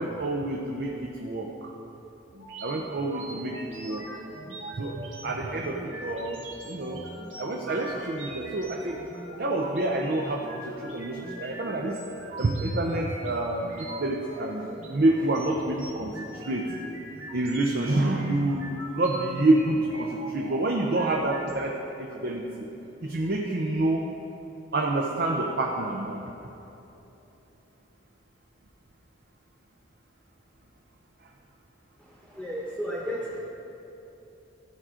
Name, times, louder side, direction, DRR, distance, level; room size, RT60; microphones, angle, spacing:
voice 1, 0.0-1.5 2.6-4.1 4.8-4.9 5.2-6.4 6.7-7.0 7.4-9.0 9.4-12.0 12.4-13.7 14.0-14.7 14.9-16.1 16.4-16.7 17.3-18.7 18.9-22.7 23.0-24.1 24.7-26.2, right 2 dB, 50° right, 0 dB, 0.6 m, -27 dB
sound 1, 2.3-21.5, right 1 dB, 75° right, 1.8 m, -42 dB
voice 2, 32.0-33.4, equal, 5° right, -6 dB, 1.1 m, -34 dB
14.5 x 5.0 x 3.7 m, 3.0 s
head